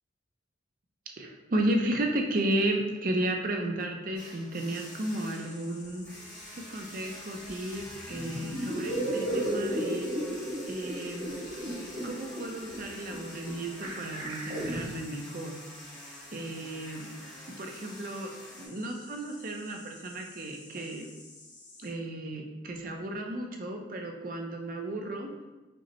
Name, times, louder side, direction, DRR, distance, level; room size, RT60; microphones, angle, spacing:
voice 1, 1.2-6.1 6.5-10.1 10.7-11.4 12.0-15.6 16.3-17.1 17.4-18.3 18.6-21.1 21.8-25.3, right 1 dB, 45° right, 2 dB, 0.5 m, -33 dB
sound 1, 4.1-18.7, equal, 15° left, 0.8 m, -48 dB
Insect, 4.7-21.9, left 2 dB, 60° left, 1.0 m, -52 dB
sound 2, 7.5-7.6 7.8-14.9, right 1 dB, 90° right, 1.0 m, -34 dB
5.1 x 2.1 x 2.9 m, 1.2 s
head